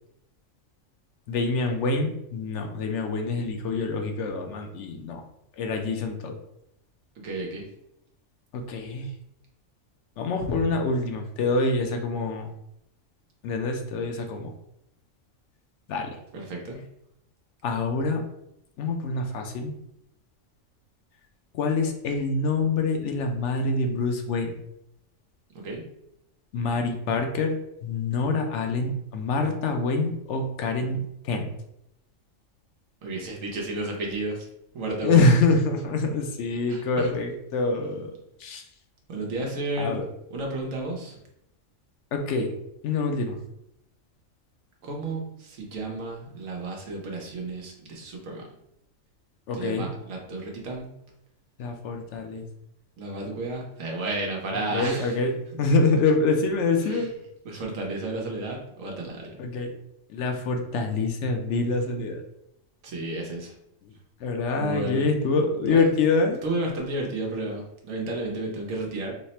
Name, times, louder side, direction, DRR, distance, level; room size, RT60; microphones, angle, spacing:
voice 1, 1.3-5.2 5.6-6.3 8.5-9.1 10.2-12.5 13.4-14.5 15.9-16.1 17.6-18.2 18.8-19.7 21.5-24.5 26.5-31.5 35.0-38.1 38.4-38.6 39.8-40.0 42.1-42.5 42.8-43.4 49.5-49.9 51.6-52.5 54.7-55.3 55.6-57.1 59.4-59.7 60.1-62.2 64.2-66.4, left 3 dB, 70° left, 4 dB, 0.8 m, -25 dB
voice 2, 7.2-7.6 16.3-16.8 25.5-25.9 33.0-34.5 34.7-35.3 36.7-37.1 39.1-40.0 40.3-41.2 44.8-48.5 49.5-50.9 53.0-55.2 55.5-55.7 56.8-57.1 57.4-59.3 62.8-63.5 64.6-65.1 65.7-65.8 66.4-69.1, right 2 dB, 85° right, 0 dB, 1.2 m, -32 dB
3.2 x 2.1 x 4.1 m, 0.79 s
omnidirectional pair, 1.4 m